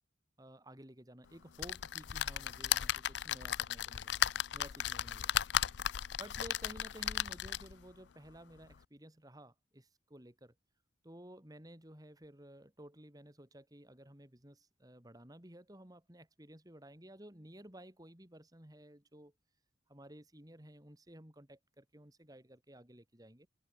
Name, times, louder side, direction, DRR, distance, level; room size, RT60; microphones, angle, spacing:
voice 1, 0.4-4.3 4.5-5.3 5.6-10.5 11.0-19.3 19.9-23.5, right 1 dB, 20° right, 2.7 m, -54 dB
sound 1, 1.6-7.8 8.4-8.5 8.7-8.8, left 10 dB, 65° left, 0.5 m, -35 dB
head